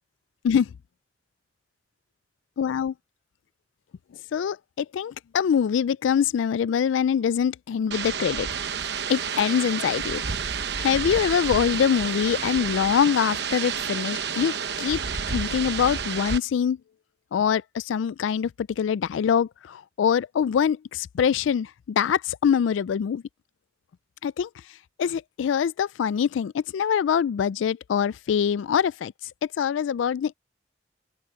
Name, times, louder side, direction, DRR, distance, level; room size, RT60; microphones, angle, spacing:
voice 1, 2.6-2.9 4.3-8.5 9.1-10.2 10.8-15.0 15.3-16.8 17.3-23.2 24.2-24.5 25.0-29.1 29.4-30.3, left 8 dB, 85° left, 0.3 m, -24 dB
sound 1, 7.9-16.4, right 6 dB, 60° right, 1.0 m, -30 dB
open air
head